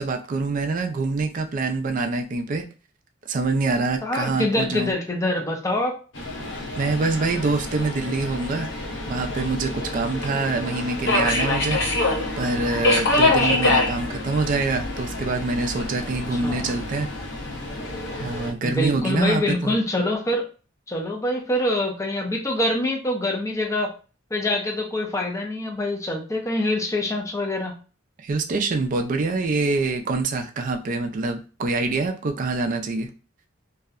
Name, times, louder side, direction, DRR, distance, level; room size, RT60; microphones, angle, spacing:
voice 1, 0.0-2.6 3.3-4.9 6.8-8.7 9.1-11.8 12.4-17.1 18.2-19.8 28.2-33.1, right 3 dB, 40° right, 5 dB, 0.3 m, -25 dB
voice 2, 4.0-6.0 13.2-13.6 16.0-16.1 16.4-16.7 18.6-20.5 20.9-23.9 24.3-27.7, left 1 dB, 15° left, 1 dB, 0.5 m, -25 dB
Subway metro underground, 6.1-18.5, left 2 dB, 60° left, 0.7 m, -26 dB
2.6 x 2.1 x 2.3 m, 0.35 s
head